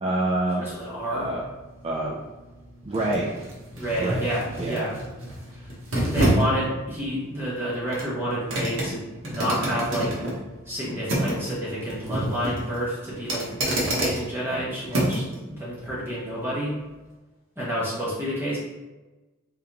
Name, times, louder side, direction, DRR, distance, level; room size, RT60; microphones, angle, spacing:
voice 1, 0.0-0.7 1.1-1.4 1.8-2.2 2.8-3.3 4.0-4.2 4.6-4.9, right 2 dB, 30° right, -3 dB, 0.4 m, -26 dB
voice 2, 0.6-1.3 3.7-4.9 5.9-10.2 10.6-16.8 17.6-18.6, equal, 10° right, -8 dB, 1.1 m, -29 dB
sound 1, 0.7-15.4 15.8-15.9, right 1 dB, 85° right, 1.1 m, -29 dB
3.6 x 3.4 x 2.8 m, 1.1 s
head